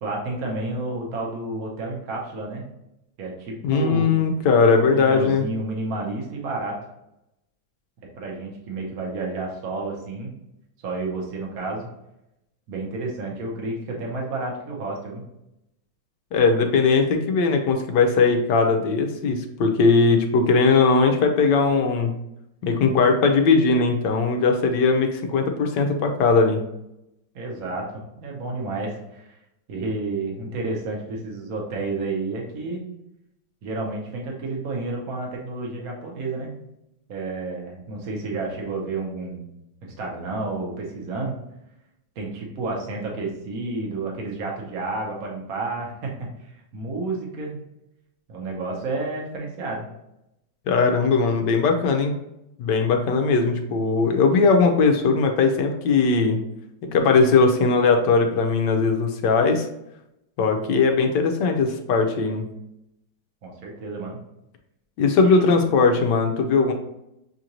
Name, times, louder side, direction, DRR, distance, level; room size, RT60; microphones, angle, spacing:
voice 1, 0.0-2.6 3.2-4.1 4.9-6.8 8.1-10.3 10.8-11.9 12.7-15.2 27.3-27.9 28.2-29.4 29.7-32.8 33.6-36.5 37.1-39.5 39.8-41.4 42.2-46.1 46.7-47.6 48.3-49.9 63.4-64.2 65.2-65.5, right 3 dB, 50° right, -1 dB, 1.3 m, -30 dB
voice 2, 3.6-5.4 16.3-22.1 22.6-26.6 50.7-52.1 52.6-56.4 56.9-59.6 60.4-62.5 65.0-66.7, left 4 dB, 70° left, 4 dB, 1.1 m, -19 dB
6.5 x 2.5 x 2.9 m, 0.86 s
omnidirectional pair, 2.1 m